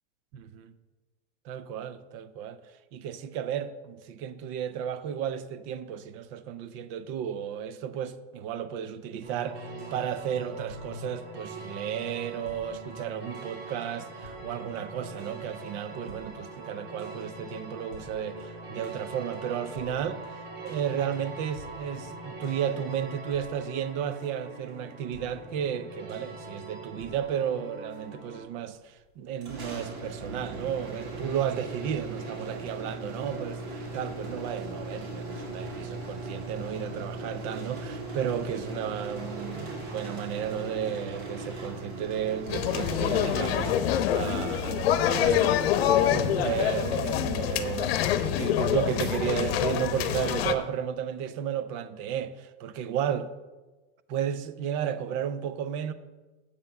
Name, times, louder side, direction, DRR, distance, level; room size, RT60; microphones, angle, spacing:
voice 1, 0.3-0.7 1.4-2.6 2.9-20.4 20.6-53.3 54.1-55.9, right 9 dB, 30° right, 0.4 m, -33 dB
sound 1, 9.2-28.4, right 2 dB, 75° right, 3.2 m, -42 dB
sound 2, 29.4-44.3, right 2 dB, 55° right, 2.6 m, -38 dB
sound 3, 42.5-50.5, left 10 dB, 70° left, 0.9 m, -26 dB
8.1 x 5.5 x 6.9 m
supercardioid pair, 165°, 31 cm